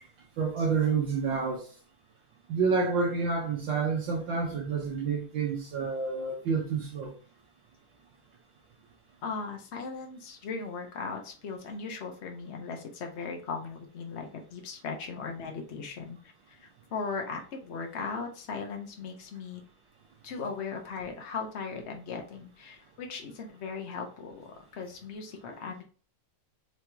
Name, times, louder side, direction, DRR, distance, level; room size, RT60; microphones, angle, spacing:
voice 1, 0.4-1.6 2.5-7.1, right 5 dB, 65° right, 1.5 m, -28 dB
voice 2, 9.2-16.2 16.5-19.6 20.2-24.4 24.7-25.8, left 5 dB, 50° left, 0.8 m, -38 dB
4.9 x 3.0 x 3.4 m
omnidirectional pair, 2.4 m